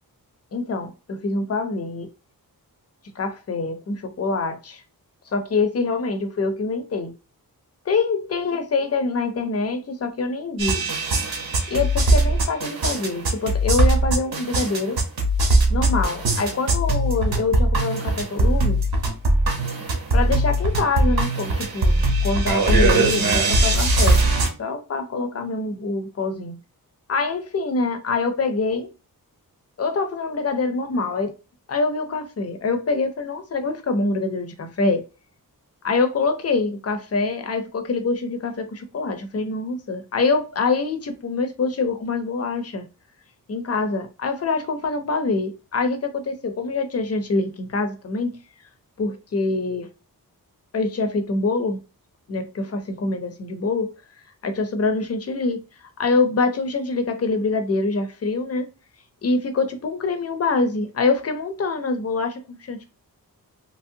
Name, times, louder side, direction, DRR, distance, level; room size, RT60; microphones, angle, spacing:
voice 1, 0.5-2.1 3.2-4.8 5.3-7.1 7.9-10.9 11.7-15.0 15.7-18.8 20.1-24.2 24.6-26.6 27.1-28.9 29.8-31.3 31.7-35.0 35.8-42.9 43.5-48.4 49.0-49.9 50.7-51.8 52.3-53.9 54.4-55.6 56.0-58.7 59.2-62.9, left 3 dB, 40° left, 0.6 m, -25 dB
sound 1, 10.6-24.5, right 2 dB, 80° right, 0.9 m, -20 dB
3.0 x 2.7 x 2.6 m
wide cardioid pair, 165°, 36 cm